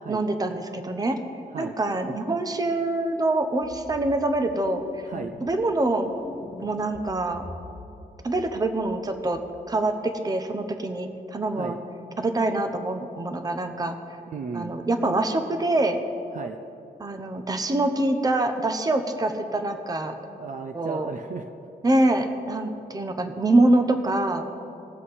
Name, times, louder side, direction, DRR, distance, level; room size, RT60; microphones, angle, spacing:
voice 1, 0.1-1.2 1.6-4.8 5.4-6.1 6.6-7.4 8.2-9.4 9.7-11.8 12.2-14.0 14.5-16.0 17.0-20.2 20.7-21.1 21.8-24.4, right 2 dB, 20° right, 7 dB, 0.8 m, -25 dB
sound 1, 2.9-3.0 3.6-4.4 4.6-5.7 6.0-8.0 8.3-9.0 9.3-9.6, left 3 dB, 35° left, 0.9 m, -43 dB
voice 2, 14.3-14.7 16.3-16.6 20.4-21.5, right 5 dB, 50° right, 6 dB, 0.5 m, -34 dB
20.0 x 7.4 x 4.1 m, 2.8 s
wide cardioid pair, 135°, 17 cm